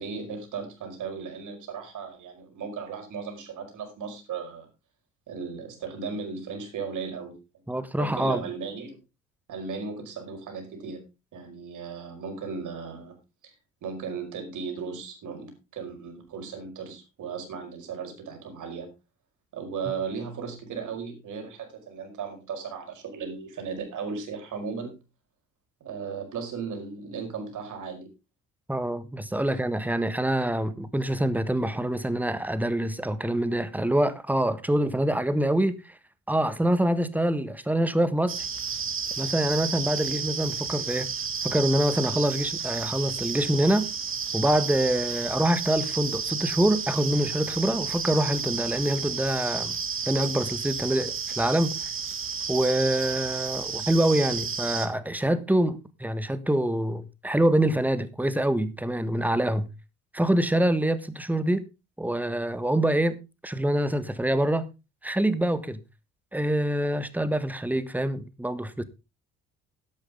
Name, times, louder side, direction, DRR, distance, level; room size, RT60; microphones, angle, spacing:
voice 1, 0.0-4.7 5.3-7.6 8.0-9.0 9.5-11.0 11.3-13.2 13.4-13.5 13.8-18.9 19.5-25.0 25.8-28.1 29.5-29.6, right 5 dB, 50° right, 5.2 m, -36 dB
voice 2, 7.7-8.5 28.7-35.9 36.3-38.4 39.2-41.1 41.4-43.9 44.3-49.7 50.1-51.8 52.5-59.7 60.1-61.6 62.0-64.7 65.0-65.8 66.3-68.8, right 1 dB, 5° right, 1.5 m, -25 dB
sound 1, 38.3-54.9, right 6 dB, 35° right, 2.2 m, -32 dB
12.0 x 11.5 x 3.6 m
figure-of-eight pair, 50°, 38 cm